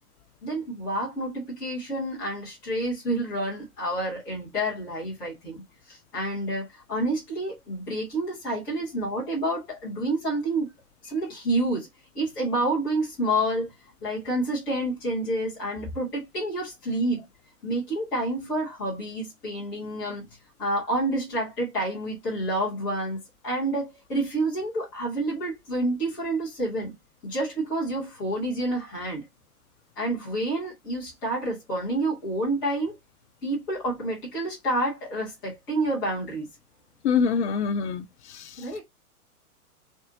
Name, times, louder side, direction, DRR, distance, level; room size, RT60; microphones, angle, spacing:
voice 1, 0.4-5.6 5.9-10.7 11.0-11.9 12.1-13.7 14.0-17.2 17.6-20.2 20.6-26.9 27.2-29.2 30.0-33.0 33.4-36.5 38.6-38.8, right 1 dB, 5° left, 0.3 m, -29 dB
voice 2, 37.0-38.0, left 6 dB, 50° left, 0.6 m, -23 dB
4.0 x 2.6 x 2.6 m
figure-of-eight pair, 110°, 46 cm